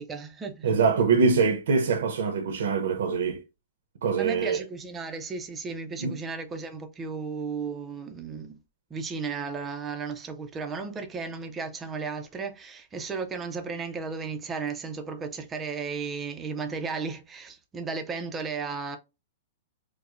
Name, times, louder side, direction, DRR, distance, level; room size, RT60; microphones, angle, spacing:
voice 1, 0.0-0.8 4.2-8.6 8.9-19.0, right 5 dB, 15° right, 0.4 m, -34 dB
voice 2, 0.6-3.4 4.0-4.6 6.0-6.1, right 5 dB, 80° right, 0.7 m, -24 dB
4.7 x 2.0 x 2.4 m
supercardioid pair, 170°, 0 cm